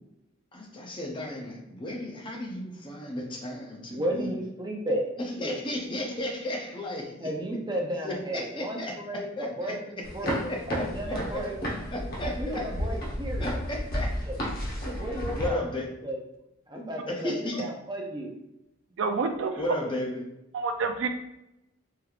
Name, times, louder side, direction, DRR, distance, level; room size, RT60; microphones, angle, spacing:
voice 1, 0.5-4.3 5.2-7.5 8.0-11.4 11.9-12.8 13.4-14.1 15.4-15.9 17.1-17.7 19.6-20.2, left 1 dB, 25° left, 0 dB, 0.6 m, -34 dB
voice 2, 3.9-5.1 5.4-5.6 7.2-10.4 10.7-11.5 12.2-13.5 14.3-14.4 14.9-15.6 16.0-16.2 16.7-18.3, right 1 dB, 20° right, 1 dB, 0.6 m, -33 dB
sound 1, 10.0-15.5, equal, 50° left, 1.0 m, -32 dB
voice 3, 19.0-19.6 20.5-21.1, right 4 dB, 65° right, 6 dB, 0.4 m, -28 dB
4.5 x 3.4 x 2.4 m, 0.89 s
head